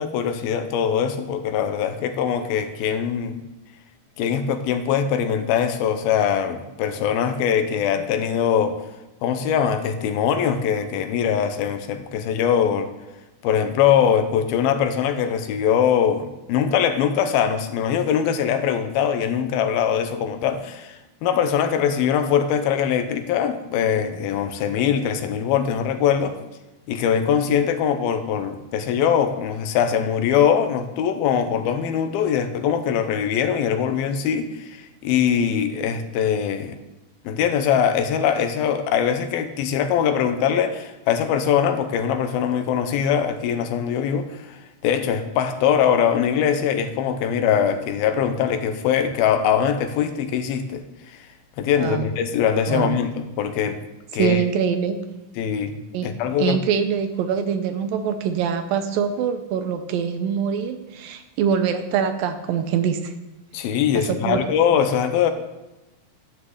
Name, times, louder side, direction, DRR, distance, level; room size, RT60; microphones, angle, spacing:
voice 1, 0.0-3.4 4.2-8.8 9.2-12.9 13.4-26.4 26.9-34.8 35.0-36.8 37.3-44.6 44.8-50.8 51.6-53.8 54.1-54.4 55.4-56.6 63.5-65.3, left 8 dB, 80° left, 9 dB, 2.7 m, -22 dB
voice 2, 51.8-52.1 52.7-53.0 54.2-55.0 55.9-56.1 56.4-63.1 64.0-64.4, right 7 dB, 75° right, 9 dB, 2.4 m, -24 dB
12.5 x 6.4 x 7.9 m, 1.0 s
omnidirectional pair, 4.3 m